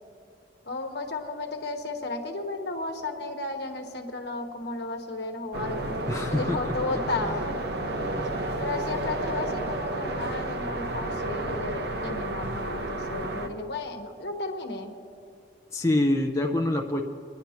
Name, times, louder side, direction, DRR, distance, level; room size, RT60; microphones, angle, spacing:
voice 1, 0.7-6.0 6.3-7.4 8.5-14.9, left 2 dB, 65° left, 3 dB, 1.1 m, -34 dB
sound 1, 5.5-13.5, right 1 dB, 65° right, 0.9 m, -31 dB
voice 2, 6.1-6.7 7.3-7.4 8.2-8.3 15.7-17.0, left 1 dB, 15° left, 2 dB, 0.4 m, -26 dB
25.5 x 10.5 x 2.9 m, 2.4 s
head